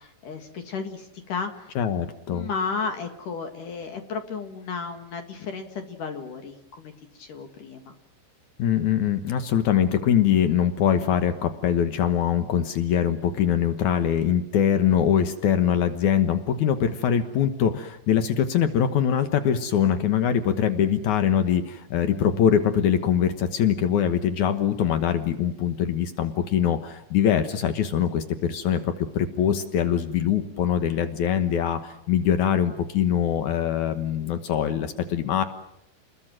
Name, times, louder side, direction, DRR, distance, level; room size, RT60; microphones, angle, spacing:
voice 1, 0.0-1.8 2.3-7.9, left 5 dB, 55° left, 6 dB, 2.8 m, -33 dB
voice 2, 1.7-2.5 8.6-35.4, left 9 dB, 85° left, 9 dB, 1.7 m, -23 dB
29.5 x 21.5 x 7.5 m, 0.81 s
omnidirectional pair, 5.4 m